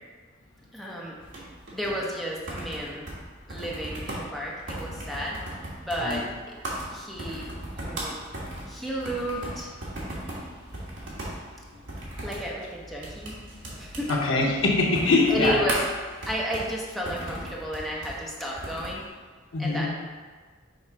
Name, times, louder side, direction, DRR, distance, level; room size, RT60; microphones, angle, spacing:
voice 1, 0.7-1.1 1.7-3.0 3.5-5.4 5.8-6.3 6.9-7.4 7.8-8.2 8.7-9.7 12.2-13.4 13.7-14.1 15.3-15.8 16.3-19.0 19.6-19.9, equal, ahead, -5 dB, 1.0 m, -32 dB
sound 1, 1.2-19.0, right 1 dB, 65° right, 1.5 m, -38 dB
voice 2, 14.1-15.6 19.5-19.9, left 3 dB, 85° left, -2 dB, 1.1 m, -23 dB
6.6 x 3.1 x 4.8 m, 1.4 s
head